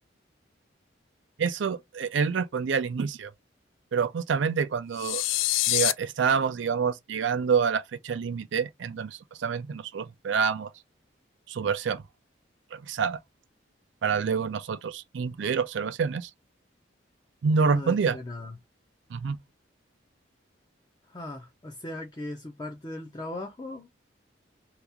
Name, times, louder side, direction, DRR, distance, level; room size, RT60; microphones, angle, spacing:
voice 1, 1.4-3.3 3.9-5.2 5.7-10.7 11.5-12.0 12.7-13.2 14.0-16.3 17.4-18.2 19.1-19.4, right 6 dB, 75° right, 0.4 m, -27 dB
sound 1, 5.0-5.9, left 15 dB, 85° left, 0.3 m, -25 dB
voice 2, 17.6-18.5 21.1-23.9, left 2 dB, 20° left, 0.5 m, -38 dB
2.9 x 2.4 x 3.5 m
head